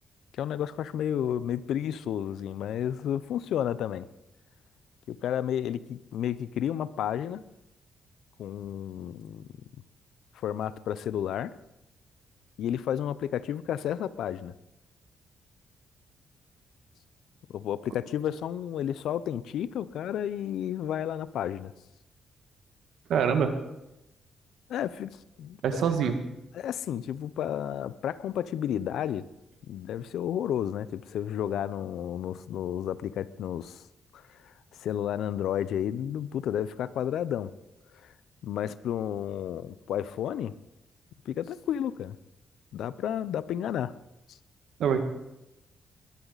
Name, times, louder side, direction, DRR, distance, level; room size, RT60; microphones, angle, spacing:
voice 1, 0.3-4.1 5.1-7.4 8.4-9.5 10.3-11.5 12.6-14.5 17.5-21.7 24.7-25.1 25.4-25.9 26.5-29.3 29.7-33.8 34.1-37.5 38.0-38.1 38.4-40.5 41.3-42.2 42.7-43.9 44.3-44.4, left 10 dB, 85° left, 17 dB, 0.6 m, -32 dB
voice 2, 23.1-23.6 25.6-26.2 44.8-45.0, right 7 dB, 75° right, 6 dB, 1.8 m, -24 dB
21.0 x 14.5 x 4.1 m, 0.92 s
cardioid pair, 115°, 0 cm